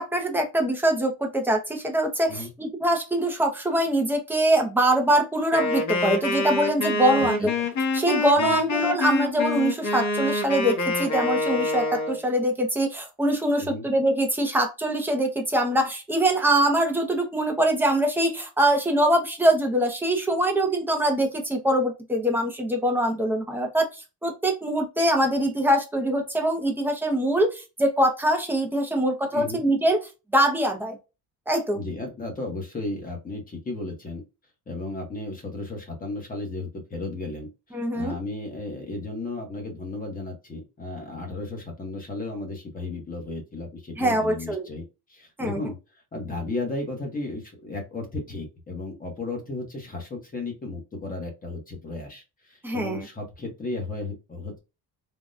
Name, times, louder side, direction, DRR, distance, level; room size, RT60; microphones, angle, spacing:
voice 1, 0.0-7.5 7.9-30.0 30.3-31.0 31.5-31.8 37.7-38.1 44.0-44.6 45.4-45.6 52.6-53.0, right 1 dB, 5° right, 3 dB, 0.5 m, -23 dB
Wind instrument woodwind instrument, 5.5-12.2, left 2 dB, 45° left, 1.0 m, -26 dB
voice 2, 7.2-7.5 8.4-8.6 13.6-13.9 29.3-29.6 31.7-34.2 34.7-44.8 45.1-54.6, left 2 dB, 20° left, 2 dB, 0.9 m, -34 dB
3.5 x 2.2 x 2.5 m, 0.28 s
cardioid pair, 175°, 39 cm